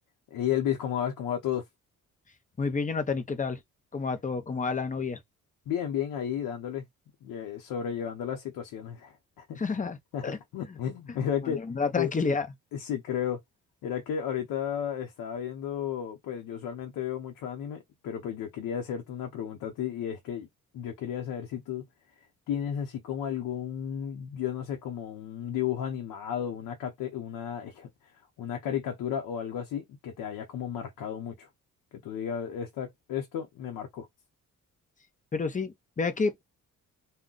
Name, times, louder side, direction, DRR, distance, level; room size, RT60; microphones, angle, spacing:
voice 1, 0.3-1.6 5.7-6.8 7.2-9.6 10.1-11.6 12.0-12.1 12.7-13.4 13.8-20.5 20.7-21.8 22.5-31.5 32.0-34.1, left 9 dB, 85° left, 0.7 m, -33 dB
voice 2, 2.6-3.6 3.9-5.2 9.6-10.0 10.2-10.4 11.4-12.5 35.3-36.4, left 4 dB, 25° left, 0.7 m, -29 dB
2.3 x 2.2 x 3.7 m
cardioid pair, 85°, 32 cm